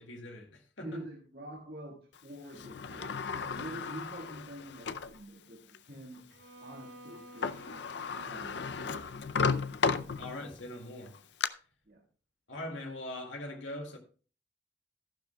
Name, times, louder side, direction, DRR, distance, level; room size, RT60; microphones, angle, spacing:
voice 1, 0.0-1.0 10.2-11.2 12.5-14.0, left 1 dB, 75° left, 2.1 m, -41 dB
voice 2, 0.8-6.3 6.6-7.8 8.1-10.2 11.9-12.0, right 1 dB, 50° right, 1.7 m, -47 dB
Sliding door, 2.5-5.2 5.7-5.8 7.1-7.2 7.4-10.6 11.1-11.5, left 5 dB, 60° left, 0.5 m, -34 dB
Bowed string instrument, 6.3-10.3, right 1 dB, 90° right, 4.7 m, -54 dB
13.0 x 11.5 x 2.3 m
head